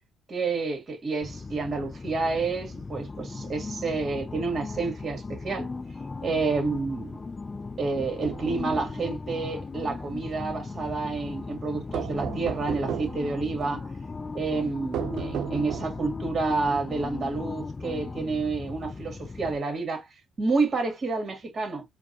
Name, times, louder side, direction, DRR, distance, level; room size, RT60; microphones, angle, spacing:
voice 1, 0.3-5.7 6.2-7.2 7.8-13.9 14.3-20.1 20.4-21.8, right 4 dB, 40° right, 1.8 m, -29 dB
sound 1, 1.2-19.6, left 3 dB, 25° left, 0.3 m, -37 dB
sound 2, 8.0-9.0 11.9-13.3 14.9-16.1, right 8 dB, 75° right, 0.3 m, -34 dB
4.5 x 2.3 x 2.8 m
cardioid pair, 105°, 0 cm